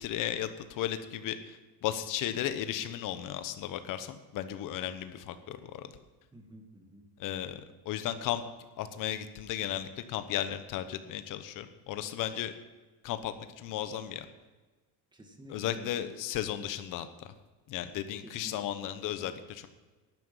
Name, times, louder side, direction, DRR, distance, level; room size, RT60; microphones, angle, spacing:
voice 1, 0.0-5.9 7.2-8.4 8.8-12.5 13.0-14.3 15.5-17.3 17.7-19.7, left 11 dB, 60° left, 10 dB, 1.1 m, -35 dB
voice 2, 6.3-7.1 15.1-16.1 18.2-19.1, right 1 dB, 10° right, 3 dB, 2.0 m, -51 dB
12.0 x 9.8 x 5.6 m, 1.3 s
cardioid pair, 135°, 37 cm